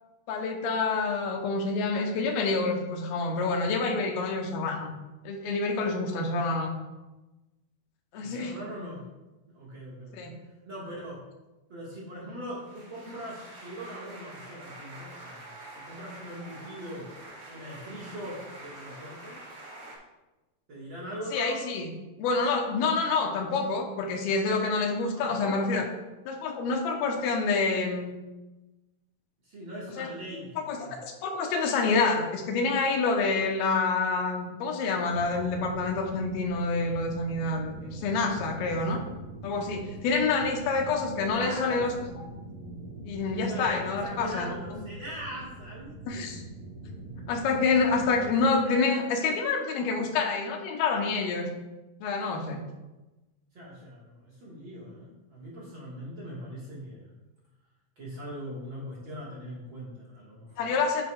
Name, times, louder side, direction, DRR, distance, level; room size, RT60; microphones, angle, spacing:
voice 1, 0.3-4.9 5.2-6.7 8.1-8.5 10.1-10.3 21.3-21.9 22.2-25.8 26.3-28.1 30.0-30.1 30.7-30.8 31.2-39.0 39.4-41.9 43.1-44.5 46.1-46.4 47.3-51.5 52.0-52.6 60.6-61.0, left 4 dB, 80° left, 2 dB, 2.8 m, -27 dB
voice 2, 8.1-9.0 9.5-10.3 10.6-11.2 11.7-15.4 15.7-17.1 17.5-19.4 20.7-21.7 25.1-25.7 29.4-31.0 39.9-40.0 40.7-40.8 41.2-41.9 43.4-46.3 48.2-49.0 53.5-57.1 58.0-60.7, equal, 45° right, -6 dB, 1.7 m, -41 dB
sound 1, 12.5-20.0, right 2 dB, 75° right, 4.5 m, -46 dB
sound 2, 35.1-48.5, right 1 dB, 45° left, 1.9 m, -43 dB
8.9 x 8.2 x 2.4 m, 1.1 s
omnidirectional pair, 4.4 m